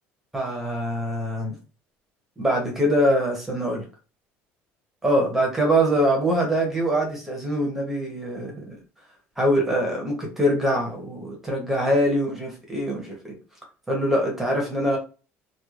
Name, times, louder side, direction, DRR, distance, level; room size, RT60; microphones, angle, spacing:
voice 1, 0.3-1.6 2.4-3.9 5.0-8.6 9.4-13.4 13.9-15.0, equal, 5° right, 0 dB, 0.9 m, -23 dB
3.1 x 2.3 x 2.4 m, 0.34 s
cardioid pair, 165°, 5 cm